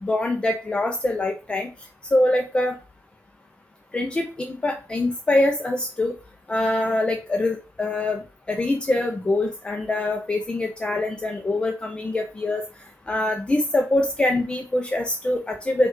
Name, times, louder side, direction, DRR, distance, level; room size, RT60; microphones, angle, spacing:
voice 1, 0.0-1.7 2.1-2.8 3.9-6.1 6.5-8.2 8.5-12.6 13.1-15.9, left 2 dB, 15° left, 2 dB, 0.4 m, -24 dB
5.1 x 2.3 x 3.7 m, 0.33 s
wide cardioid pair, 160°, 6 cm